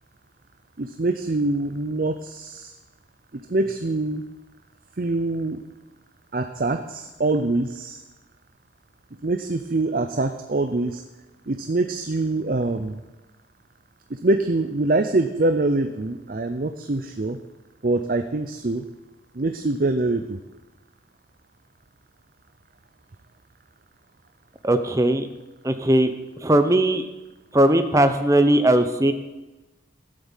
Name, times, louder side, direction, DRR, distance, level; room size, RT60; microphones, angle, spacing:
voice 1, 0.8-2.7 3.3-4.2 5.0-5.6 6.3-8.0 9.2-11.0 11.5-13.0 14.1-17.4 17.8-18.8 19.3-20.4, right 2 dB, 45° right, 7 dB, 0.6 m, -24 dB
voice 2, 24.6-25.3 25.6-26.1 26.4-27.0 27.5-29.1, right 1 dB, 15° right, 9 dB, 0.8 m, -18 dB
14.0 x 7.7 x 7.3 m, 1.1 s
head